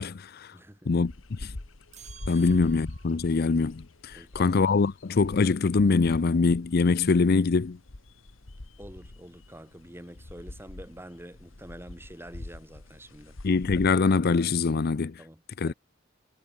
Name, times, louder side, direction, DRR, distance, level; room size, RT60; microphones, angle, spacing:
voice 1, 0.0-0.5 0.9-1.5 2.3-7.8 13.4-15.2 15.6-15.7, left 4 dB, 50° left, 0.5 m, -24 dB
voice 2, 0.5-1.1 2.4-2.6 4.1-4.5 8.8-13.4 15.2-15.8, right 1 dB, 10° right, 4.4 m, -47 dB
sound 1, 1.1-14.0, left 2 dB, 80° left, 1.5 m, -44 dB
sound 2, 1.9-3.3, right 8 dB, 35° right, 6.7 m, -51 dB
head